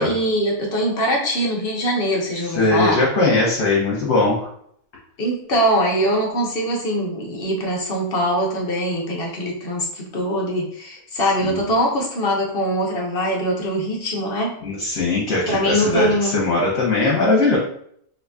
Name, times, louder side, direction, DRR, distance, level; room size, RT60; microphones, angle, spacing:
voice 1, 0.0-3.0 5.2-14.5 15.5-16.5, equal, 45° left, -1 dB, 0.9 m, -22 dB
voice 2, 2.5-4.5 11.4-11.6 14.6-17.6, left 2 dB, 65° left, -5 dB, 1.2 m, -20 dB
3.8 x 2.9 x 2.3 m, 0.66 s
omnidirectional pair, 1.5 m